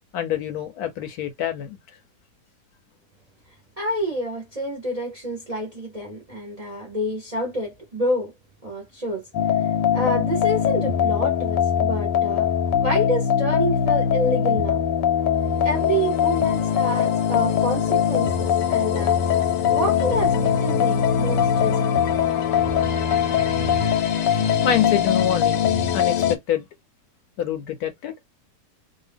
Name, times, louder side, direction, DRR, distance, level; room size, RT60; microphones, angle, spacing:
voice 1, 0.1-1.8 24.6-25.6 25.9-26.7 27.4-28.1, left 9 dB, 70° left, 1.0 m, -26 dB
voice 2, 3.8-8.3 8.6-9.3 9.9-14.8 15.6-19.2 19.7-22.1, equal, 35° right, 0.6 m, -28 dB
sound 1, 9.3-26.4, left 8 dB, 90° left, 1.3 m, -21 dB
2.7 x 2.5 x 3.3 m
omnidirectional pair, 1.8 m